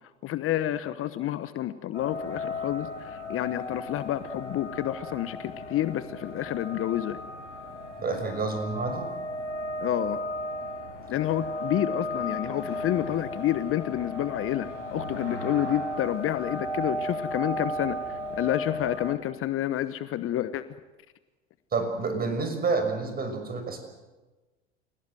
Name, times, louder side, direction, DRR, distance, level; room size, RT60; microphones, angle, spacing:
voice 1, 0.2-7.2 9.8-10.2 11.1-20.6, left 13 dB, 40° left, 13 dB, 1.1 m, -29 dB
sound 1, 1.9-19.1, left 1 dB, 90° left, 4.6 m, -35 dB
voice 2, 8.0-9.0 21.7-23.8, right 4 dB, 25° right, 6 dB, 6.2 m, -29 dB
29.0 x 17.5 x 7.9 m, 1.2 s
hypercardioid pair, 85°, 35 cm